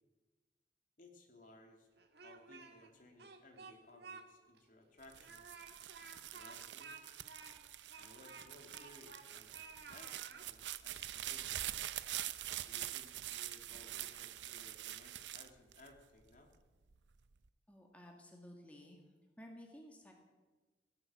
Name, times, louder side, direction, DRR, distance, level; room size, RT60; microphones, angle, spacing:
voice 1, 1.0-1.9 2.2-5.6 6.3-7.0 8.0-11.8 12.6-16.5, left 2 dB, 50° left, 3 dB, 2.6 m, -61 dB
Speech, 2.0-2.9 3.2-4.2 4.6-4.7 5.2-9.3 9.5-10.5, right 4 dB, 65° right, 1.8 m, -54 dB
sound 1, 5.0-16.4 16.9-17.5, right 13 dB, 85° right, 0.6 m, -45 dB
voice 2, 17.7-19.0 19.4-20.1, equal, 10° left, 1 dB, 1.8 m, -55 dB
17.0 x 11.0 x 7.7 m, 1.3 s
head